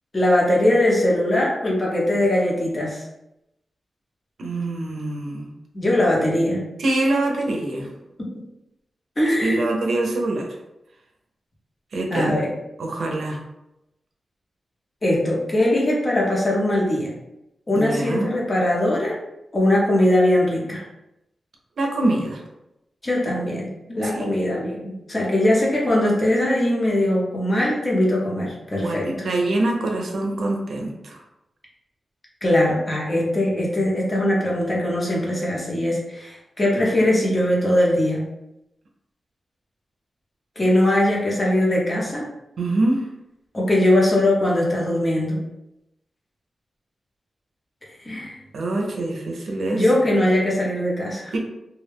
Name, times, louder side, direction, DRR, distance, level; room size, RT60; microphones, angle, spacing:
voice 1, 0.1-3.0 5.7-6.7 8.2-8.3 9.2-9.7 12.1-12.5 15.0-17.1 17.7-19.2 19.5-20.8 23.0-29.1 32.4-38.3 40.6-42.3 43.5-45.4 48.0-48.4 49.7-51.4, left 1 dB, 30° left, -3 dB, 0.8 m, -21 dB
voice 2, 4.4-5.5 6.8-7.9 9.4-10.5 11.9-12.4 12.8-13.4 17.7-18.3 21.8-22.4 24.0-24.5 28.8-31.2 42.6-43.0 48.5-49.8 51.3-51.4, right 2 dB, 85° right, 0 dB, 0.5 m, -24 dB
2.2 x 2.1 x 3.3 m, 0.89 s
wide cardioid pair, 85°, 0 cm